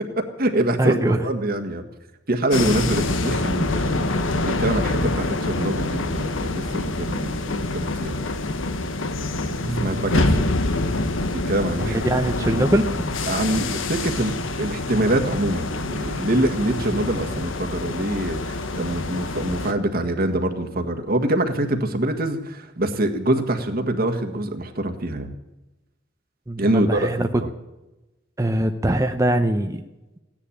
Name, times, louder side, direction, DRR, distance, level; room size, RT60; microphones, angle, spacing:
voice 1, 0.0-1.8 2.3-8.2 9.7-10.6 11.3-12.0 12.4-12.7 13.3-25.3 26.6-27.5, right 1 dB, 50° right, 6 dB, 1.7 m, -25 dB
voice 2, 0.8-1.2 9.6-10.3 11.8-12.9 26.5-27.3 28.4-29.8, right 1 dB, 15° right, 5 dB, 0.7 m, -22 dB
sound 1, 2.5-19.7, left 2 dB, 90° left, 1.2 m, -26 dB
16.5 x 10.0 x 8.6 m, 1.0 s
head